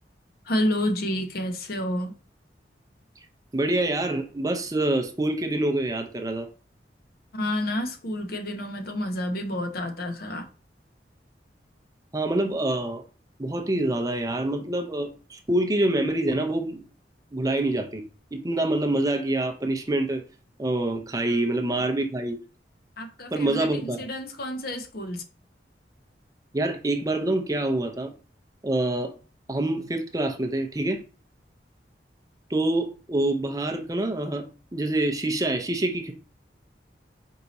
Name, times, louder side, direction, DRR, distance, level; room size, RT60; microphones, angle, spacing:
voice 1, 0.5-2.1 7.3-10.5 21.8-21.9 23.0-25.2, left 1 dB, 60° left, 0.8 m, -29 dB
voice 2, 3.5-6.5 12.1-13.0 13.4-16.8 17.3-18.0 18.3-20.2 20.6-22.4 23.3-24.0 26.5-28.1 28.6-29.1 29.5-31.0 32.5-34.5 34.7-36.1, right 1 dB, 20° right, 0.5 m, -26 dB
4.6 x 2.7 x 4.0 m
head